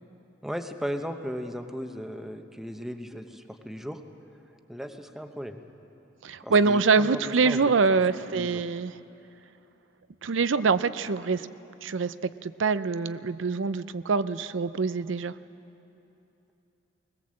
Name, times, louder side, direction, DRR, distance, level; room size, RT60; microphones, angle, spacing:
voice 1, 0.4-4.0 4.7-5.6 6.4-7.6 7.9-8.0 8.3-8.6, equal, ahead, 6 dB, 0.9 m, -36 dB
voice 2, 6.2-8.9 10.2-11.5 11.8-15.3, right 4 dB, 80° right, 14 dB, 0.6 m, -25 dB
20.5 x 19.5 x 7.6 m, 2.9 s
head